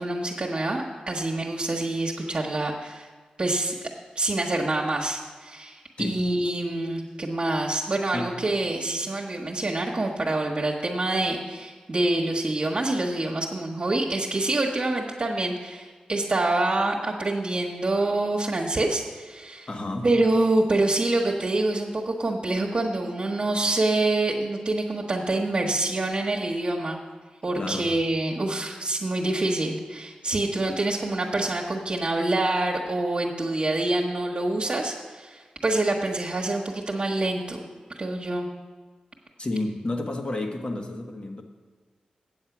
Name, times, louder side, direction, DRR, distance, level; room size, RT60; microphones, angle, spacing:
voice 1, 0.0-3.1 3.4-3.7 4.1-19.7 20.0-27.0 27.4-37.6 38.0-38.5, right 2 dB, 45° right, -2 dB, 1.3 m, -26 dB
voice 2, 19.7-20.1 27.6-27.9 39.4-41.4, left 2 dB, 40° left, 3 dB, 1.4 m, -30 dB
8.7 x 7.3 x 6.0 m, 1.4 s
cardioid pair, 50°, 3 cm